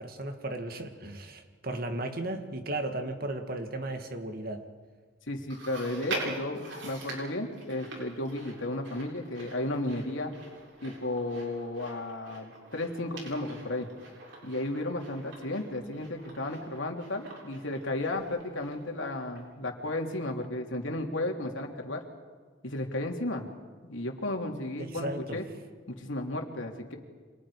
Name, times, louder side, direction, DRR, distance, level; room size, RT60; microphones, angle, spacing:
voice 1, 0.0-4.6 24.8-25.4, right 1 dB, 50° right, 6 dB, 2.2 m, -35 dB
voice 2, 5.3-10.3 10.8-13.9 14.4-22.0 22.6-23.4 23.9-25.4 25.9-27.0, left 1 dB, 80° left, 2 dB, 3.1 m, -34 dB
Chewing mastication, 5.5-19.0 19.4-19.5 20.3-20.4, right 2 dB, 70° right, 7.6 m, -43 dB
30.0 x 26.5 x 5.1 m, 1.5 s
head